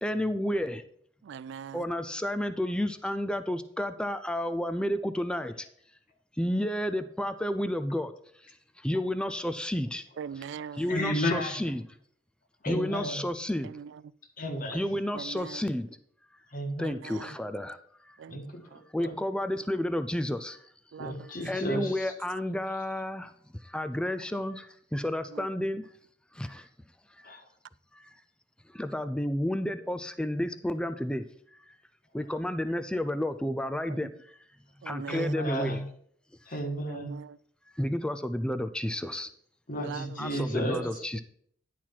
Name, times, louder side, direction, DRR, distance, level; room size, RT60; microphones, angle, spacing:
voice 1, 0.0-0.8 1.7-5.7 6.4-8.1 8.8-10.0 10.8-11.8 12.7-13.7 14.7-15.9 16.8-17.8 18.1-18.2 18.9-20.6 21.4-23.3 23.6-25.8 26.3-26.7 27.2-27.3 27.9-28.1 28.7-31.2 31.5-31.7 32.1-34.4 34.8-35.8 37.8-39.3 40.2-41.2, left 1 dB, 5° left, 0.4 m, -31 dB
voice 2, 1.2-1.9 10.2-10.9 13.6-14.0 15.1-15.6 16.8-17.4 18.2-18.4 18.7-18.8 20.9-21.7 25.3-25.5 33.9-34.1 34.8-35.4 36.8-37.4 39.8-40.7, right 7 dB, 65° right, 0.3 m, -42 dB
voice 3, 10.9-11.6 12.6-13.2 14.4-14.8 16.5-16.9 18.3-18.6 19.0-19.2 21.0-22.1 27.2-27.4 35.1-35.8 36.5-37.1 39.7-41.0, equal, 45° left, 1.6 m, -32 dB
10.0 x 4.6 x 5.8 m
head